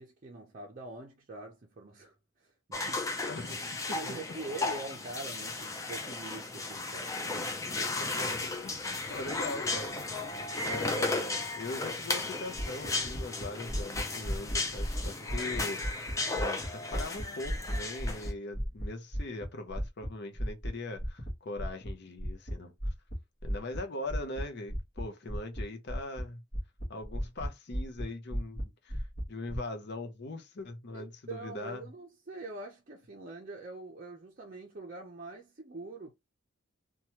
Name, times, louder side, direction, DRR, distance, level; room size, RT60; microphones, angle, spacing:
voice 1, 0.0-3.1 3.9-7.5 15.2-15.6 22.6-22.7 30.9-36.1, right 2 dB, 35° right, 0.5 m, -44 dB
sound 1, 2.7-18.3, left 3 dB, 15° left, 0.4 m, -35 dB
voice 2, 3.3-4.1 7.3-7.5 8.0-10.0 10.6-15.8 16.3-22.7 23.4-26.4 26.9-31.8, left 2 dB, 50° left, 0.6 m, -41 dB
sound 2, 12.6-16.7 16.9-20.1 20.3-20.7 21.0-21.3 21.6-21.9 22.2-22.5 22.8-23.2 23.4-23.8 24.1-24.4 24.7-25.0 25.3-25.6 25.9-26.2 26.5-27.5 27.7-28.0 28.3-28.6 28.9-29.6, equal, 30° left, 1.2 m, -34 dB
2.9 x 2.3 x 2.8 m
head